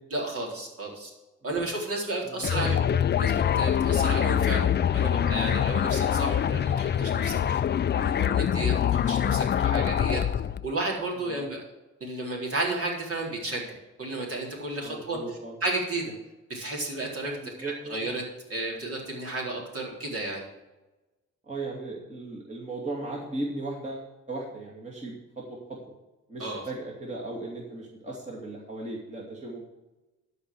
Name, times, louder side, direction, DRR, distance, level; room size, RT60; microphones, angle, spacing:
voice 1, 0.1-1.1 1.4-2.8 3.2-7.6 7.9-10.2 10.6-11.6 12.0-13.7 14.0-15.2 15.6-16.1 16.5-18.2 18.5-20.4 26.4-26.6, right 2 dB, 50° right, -2 dB, 4.0 m, -32 dB
voice 2, 2.2-3.2 5.6-6.0 11.2-11.5 14.7-15.6 17.4-18.0 21.4-25.9 26.3-29.6, right 2 dB, 25° right, -3 dB, 2.5 m, -37 dB
sound 1, 2.4-10.7, left 9 dB, 35° left, 0.4 m, -24 dB
12.5 x 5.0 x 7.8 m, 1.1 s
cardioid pair, 90°, 30 cm